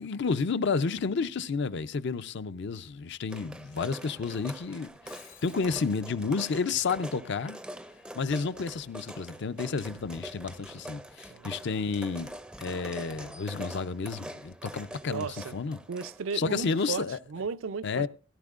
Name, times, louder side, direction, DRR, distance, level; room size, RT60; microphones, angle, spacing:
voice 1, 0.0-7.6 8.1-12.3 12.6-15.8 16.3-17.2 17.8-18.1, left 4 dB, 60° left, 0.5 m, -31 dB
sound 1, 3.3-16.7, right 1 dB, 5° right, 0.5 m, -44 dB
Shatter, 4.9-6.0, left 9 dB, 85° left, 2.6 m, -53 dB
voice 2, 15.1-15.5 15.9-18.0, right 5 dB, 75° right, 0.5 m, -35 dB
17.0 x 11.5 x 2.5 m
head